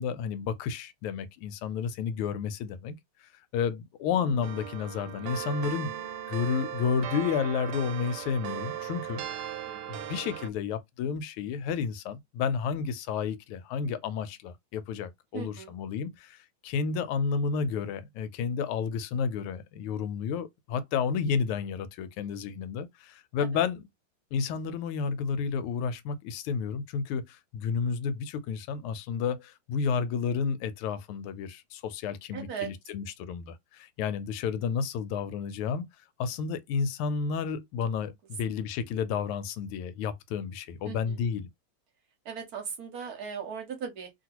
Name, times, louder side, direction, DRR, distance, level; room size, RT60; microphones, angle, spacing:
voice 1, 0.0-2.9 3.5-6.0 6.3-9.5 9.9-23.9 24.3-35.9 36.2-41.5, left 6 dB, 90° left, 1.5 m, -31 dB
sound 1, 4.4-10.5, right 10 dB, 90° right, 1.5 m, -38 dB
voice 2, 9.6-10.0 15.3-15.7 23.4-23.5 32.3-32.7 40.8-41.2 42.2-44.1, right 7 dB, 60° right, 1.0 m, -38 dB
2.9 x 2.9 x 2.8 m
omnidirectional pair, 2.3 m